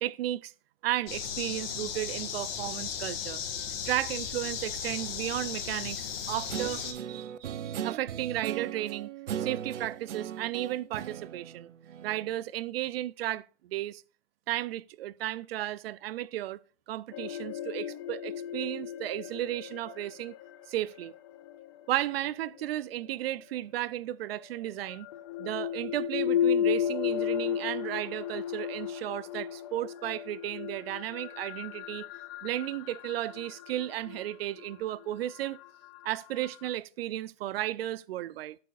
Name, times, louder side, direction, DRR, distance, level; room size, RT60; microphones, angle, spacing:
voice 1, 0.0-0.5 0.8-3.4 3.9-9.1 9.4-11.7 12.0-14.0 14.5-16.6 16.9-20.4 20.7-21.1 21.9-25.1 25.4-32.1 32.4-35.6 36.0-38.6, right 14 dB, 55° right, 0.6 m, -34 dB
sound 1, 1.1-6.9, left 8 dB, 55° left, 2.3 m, -36 dB
Guitar, 6.5-12.3, right 9 dB, 85° right, 0.8 m, -38 dB
sound 2, 17.1-23.1 24.3-36.7, left 9 dB, 25° left, 0.3 m, -35 dB
11.0 x 7.9 x 2.5 m
hypercardioid pair, 130°, 35 cm